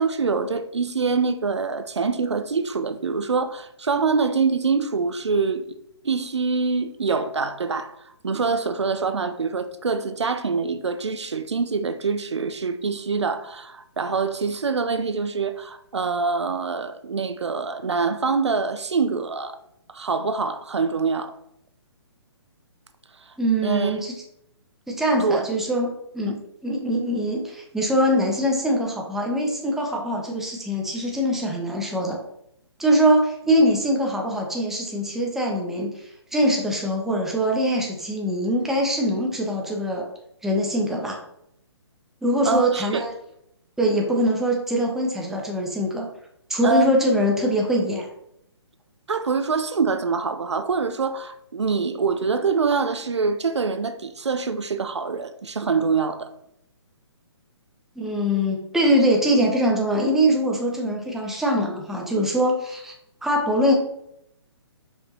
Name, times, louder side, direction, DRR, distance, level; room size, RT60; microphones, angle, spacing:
voice 1, 0.0-5.7 6.0-8.0 8.2-19.6 19.9-21.4 23.3-23.4 23.6-24.0 25.2-25.5 26.3-26.4 42.5-43.0 46.6-47.0 49.1-56.3, right 4 dB, 80° right, 0.6 m, -25 dB
voice 2, 23.4-24.1 24.9-25.9 26.1-32.2 32.8-40.1 40.4-41.2 42.2-43.1 43.8-46.1 46.5-48.1 58.0-62.9 63.2-63.7, equal, ahead, 0.8 m, -23 dB
5.0 x 5.0 x 4.2 m
figure-of-eight pair, 135°, 14 cm